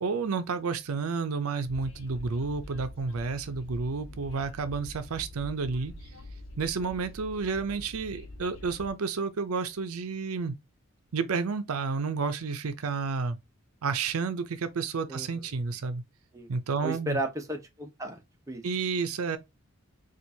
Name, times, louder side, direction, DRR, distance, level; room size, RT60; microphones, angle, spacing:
voice 1, 0.0-5.9 6.6-10.6 11.1-13.4 13.8-16.0 16.5-17.2 18.6-19.4, right 4 dB, 90° right, 0.5 m, -31 dB
Train, 1.6-8.9, left 1 dB, 70° left, 0.8 m, -45 dB
voice 2, 15.1-15.5 16.3-16.5 16.8-18.2 18.5-18.6, right 1 dB, 15° right, 0.7 m, -34 dB
4.4 x 2.4 x 2.6 m
head